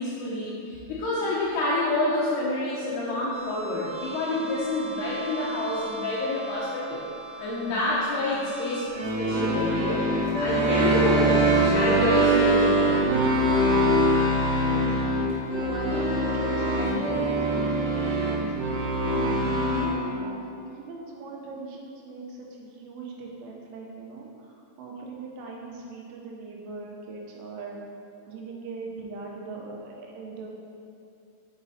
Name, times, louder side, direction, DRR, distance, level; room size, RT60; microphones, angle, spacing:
voice 1, 0.0-7.0 7.4-8.8 9.2-10.0 10.4-13.0, left 2 dB, 85° left, -6 dB, 2.2 m, -28 dB
sound 1, 3.3-19.9, right 1 dB, 60° right, 2.5 m, -25 dB
voice 2, 14.5-18.5 19.6-27.8 28.3-30.5, right 3 dB, 80° right, -1 dB, 3.3 m, -39 dB
6.1 x 6.0 x 4.2 m, 2.6 s
omnidirectional pair, 5.6 m